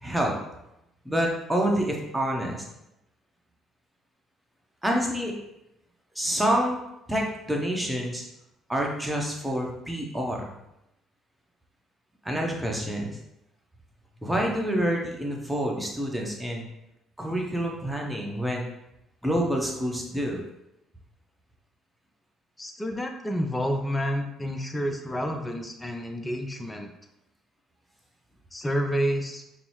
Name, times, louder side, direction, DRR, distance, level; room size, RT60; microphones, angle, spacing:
voice 1, 0.0-0.3 1.0-2.6 4.8-5.3 6.1-6.8 7.1-8.2 8.7-10.5 12.2-13.2 14.2-16.7 17.2-18.7 19.2-20.4, equal, 5° right, -1 dB, 1.0 m, -27 dB
voice 2, 22.6-26.9 28.5-29.4, equal, 15° left, 5 dB, 0.6 m, -29 dB
5.2 x 2.0 x 3.0 m, 0.87 s
hypercardioid pair, 50°, 0 cm